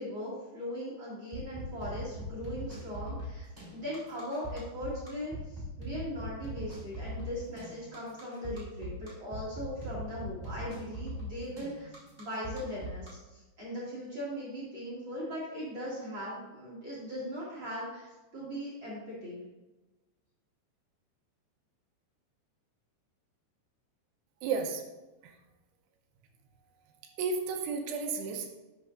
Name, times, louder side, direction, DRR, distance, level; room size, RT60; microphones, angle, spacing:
voice 1, 0.0-3.4 3.7-19.5, equal, 40° right, -7 dB, 2.0 m, -39 dB
sound 1, 1.3-13.1, right 1 dB, 15° right, 1.8 m, -40 dB
voice 2, 24.4-24.9 25.2-25.3 27.2-28.5, right 5 dB, 80° right, 4 dB, 2.6 m, -32 dB
11.0 x 6.4 x 2.5 m, 1.1 s
omnidirectional pair, 5.1 m